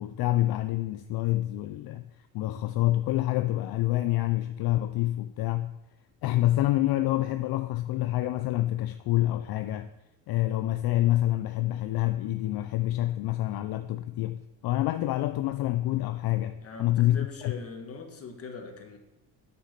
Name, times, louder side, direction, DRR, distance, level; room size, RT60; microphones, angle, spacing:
voice 1, 0.0-2.0 2.3-5.7 6.2-9.9 10.3-17.5, left 15 dB, 65° left, 0.5 m, -27 dB
voice 2, 16.6-19.0, left 4 dB, 35° left, 1.4 m, -41 dB
6.1 x 5.7 x 6.7 m
cardioid pair, 110°, 39 cm